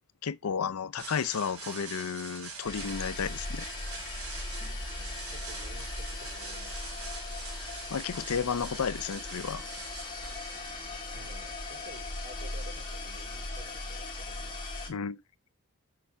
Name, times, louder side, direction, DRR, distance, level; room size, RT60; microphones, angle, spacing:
voice 1, 0.2-3.7 7.6-9.6 14.9-15.2, left 6 dB, 80° left, 0.5 m, -33 dB
sound 1, 1.0-11.6, right 4 dB, 75° right, 4.1 m, -45 dB
sound 2, 2.6-14.9, left 2 dB, 20° left, 2.2 m, -39 dB
voice 2, 4.8-6.9 10.7-14.6, right 1 dB, 50° right, 3.1 m, -53 dB
6.6 x 4.4 x 5.7 m
head